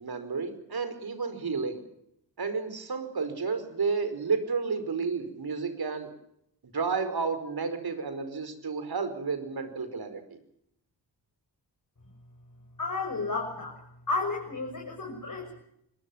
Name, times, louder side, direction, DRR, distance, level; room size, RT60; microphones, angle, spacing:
voice 1, 0.0-1.8 2.4-6.1 6.7-10.4, right 5 dB, 55° right, 10 dB, 5.0 m, -31 dB
voice 2, 12.8-13.8 14.1-15.6, left 3 dB, 45° left, 1 dB, 7.0 m, -32 dB
25.0 x 20.0 x 7.2 m, 0.75 s
cardioid pair, 50°, 43 cm